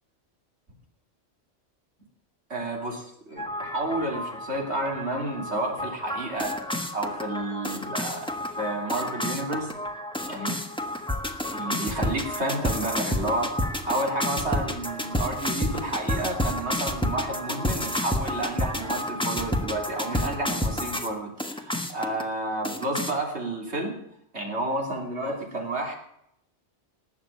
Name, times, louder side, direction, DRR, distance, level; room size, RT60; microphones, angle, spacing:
voice 1, 2.5-6.5 6.9-9.7 10.2-10.6 11.5-13.5 13.8-24.0 24.3-26.0, right 1 dB, 65° right, 1 dB, 3.3 m, -31 dB
sound 1, 3.4-21.1 21.4-22.2 22.6-23.1, left 1 dB, 5° left, 1.3 m, -30 dB
19.5 x 7.4 x 8.7 m, 0.77 s
omnidirectional pair, 1.2 m